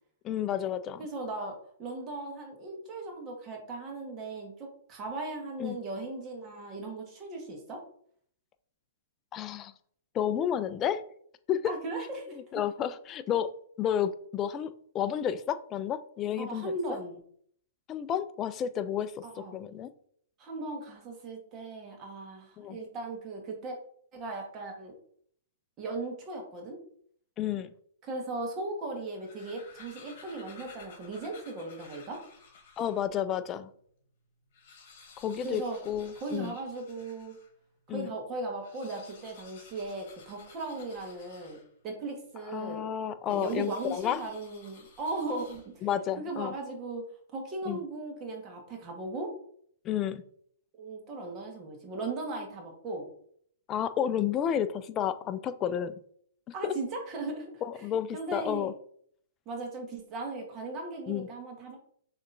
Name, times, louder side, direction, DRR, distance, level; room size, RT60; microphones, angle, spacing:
voice 1, 0.2-1.0 5.6-5.8 9.3-9.7 10.1-11.0 11.5-11.7 12.5-13.5 13.8-16.7 17.9-19.9 22.6-22.8 27.4-27.7 32.8-33.7 35.2-36.5 37.9-38.1 42.5-44.2 45.8-46.5 47.7-47.8 49.8-50.2 53.7-55.9 56.6-56.7 57.6-58.7 61.1-61.3, left 9 dB, 25° left, 12 dB, 0.4 m, -31 dB
voice 2, 1.0-1.5 1.8-7.8 11.6-12.4 16.4-17.2 19.2-19.6 20.4-23.8 24.1-24.9 25.8-26.8 28.0-32.2 35.4-35.8 36.1-37.4 37.9-42.8 43.3-45.9 46.2-47.0 47.3-49.3 50.8-53.1 56.5-57.5 57.7-57.8 58.1-58.7 59.4-61.8, right 2 dB, 30° right, 1 dB, 1.4 m, -37 dB
sound 1, 29.1-33.2 33.7-33.8 34.0-34.1 34.4-37.6 38.5-42.0 43.3-46.0, left 5 dB, 55° left, 1.3 m, -54 dB
6.5 x 3.0 x 2.6 m, 0.62 s
hypercardioid pair, 130°, 0 cm